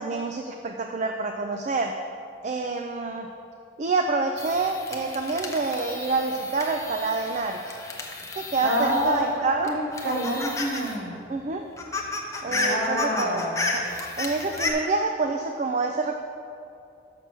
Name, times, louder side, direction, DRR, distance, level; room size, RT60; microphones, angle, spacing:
voice 1, 0.0-1.9 2.4-3.3 3.8-7.7 8.3-9.7 11.3-11.7 12.4-13.4 13.7-13.8 14.2-16.2, right 3 dB, 40° right, 4 dB, 0.4 m, -27 dB
sound 1, 4.4-9.3 9.6-11.0 11.3-11.4 11.6-14.7, left 2 dB, 15° left, 0.7 m, -32 dB
voice 2, 8.6-11.2 12.5-13.8, equal, 65° right, -2 dB, 1.1 m, -27 dB
6.7 x 6.0 x 6.2 m, 2.5 s
head